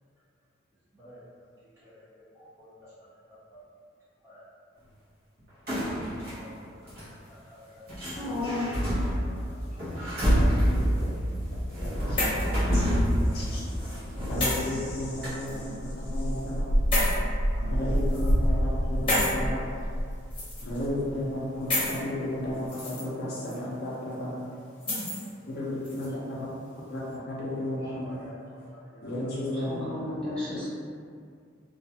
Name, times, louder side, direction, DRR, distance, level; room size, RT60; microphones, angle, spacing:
sound 1, 5.7-6.4 6.9-7.1 7.9-14.9 15.2-15.3, equal, 50° right, 0.8 m, -27 dB
voice 1, 6.0-6.8 7.5-7.8 8.9-9.5 12.1-12.2 13.2-13.3 13.9-14.2 17.5-18.3 19.0-19.1 19.3-19.7 22.9-23.3 23.7-24.5 25.1-25.2 25.5-25.6 27.8-28.4 28.7-29.3 29.7-30.0 30.4-30.5, left 1 dB, 15° right, -11 dB, 0.5 m, -52 dB
sound 2, 8.1-8.7 9.7-10.4 11.6-12.6 13.1-13.2 14.4-14.6 15.5-15.6 16.9-17.2 18.0-18.3 19.1-19.4 20.3-20.8 21.7-22.0 22.5-23.0 23.4-23.6 24.8-25.3 25.8-26.1, left 1 dB, 25° left, 0.8 m, -30 dB
voice 2, 10.7-11.1 11.8-12.2 12.7-12.9 13.3-13.6 14.3-16.6 17.6-19.6 20.6-24.3 25.5-26.5 26.9-27.0 27.3-28.2 29.0-29.8, left 1 dB, 50° left, -6 dB, 0.5 m, -33 dB
sound 3, 15.0-21.9 22.4-22.5, equal, 85° right, 0.4 m, -28 dB
voice 3, 29.6-30.6, left 2 dB, 5° left, -13 dB, 1.1 m, -34 dB
2.3 x 2.2 x 2.8 m, 2.2 s
head